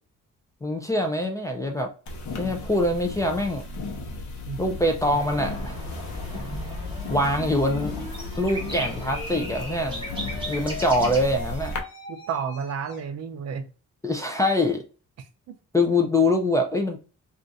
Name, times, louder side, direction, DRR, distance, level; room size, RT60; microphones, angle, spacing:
voice 1, 0.6-1.9 2.4-3.6 4.6-5.8 7.1-7.9 8.4-10.1 10.5-11.7 14.0-14.8 15.7-17.0, left 1 dB, 10° left, 0.3 m, -24 dB
sound 1, 2.1-11.8, left 3 dB, 65° left, 0.8 m, -35 dB
sound 2, 5.1-11.2, equal, 15° right, 0.9 m, -37 dB
sound 3, 5.3-13.1, left 2 dB, 40° left, 1.4 m, -41 dB
voice 2, 12.1-13.6 15.2-15.6, right 6 dB, 55° right, 0.5 m, -32 dB
2.4 x 2.4 x 3.9 m
wide cardioid pair, 165°, 31 cm